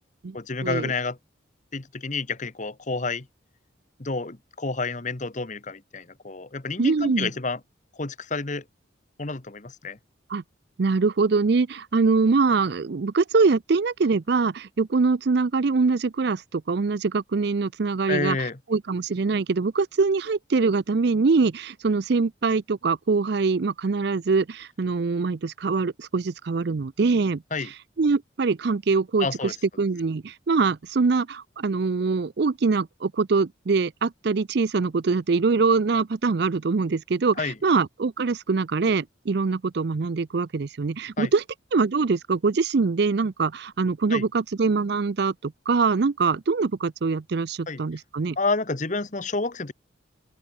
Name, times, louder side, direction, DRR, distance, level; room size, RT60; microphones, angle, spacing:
voice 1, 0.3-1.2 1.7-3.3 4.0-7.6 8.0-8.6 9.2-10.0 18.1-18.6 27.5-27.7 29.2-29.5 37.4-37.6 41.2-41.3 44.1-44.3 47.7-47.8 48.4-49.7, left 3 dB, 40° left, 1.2 m, -29 dB
voice 2, 6.8-7.3 10.3-10.4 10.8-18.4 18.7-27.4 28.0-29.3 29.8-41.4 41.7-48.4, right 4 dB, 55° right, 0.5 m, -23 dB
open air
head